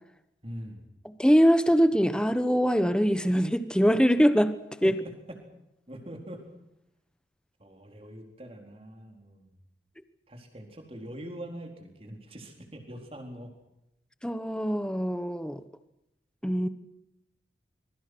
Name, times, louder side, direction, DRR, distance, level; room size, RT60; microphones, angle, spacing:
voice 1, 0.4-0.9 4.8-4.9 5.9-6.5 7.6-9.6 10.3-13.5, right 1 dB, 30° right, 3 dB, 4.3 m, -43 dB
voice 2, 1.0-4.5 4.8-4.9 14.2-15.6 16.4-16.7, equal, 5° left, 12 dB, 1.1 m, -23 dB
25.0 x 22.5 x 6.3 m, 0.86 s
head